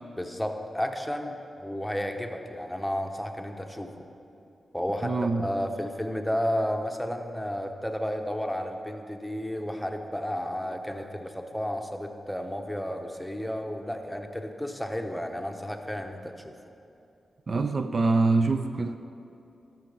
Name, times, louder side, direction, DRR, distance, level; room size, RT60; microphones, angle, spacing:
voice 1, 0.2-1.3 1.6-3.9 4.7-16.5, equal, 5° left, 4 dB, 0.9 m, -32 dB
voice 2, 5.0-5.5 17.5-19.0, right 3 dB, 55° right, 8 dB, 0.4 m, -25 dB
13.5 x 5.9 x 5.3 m, 2.7 s
cardioid pair, 55°, 0 cm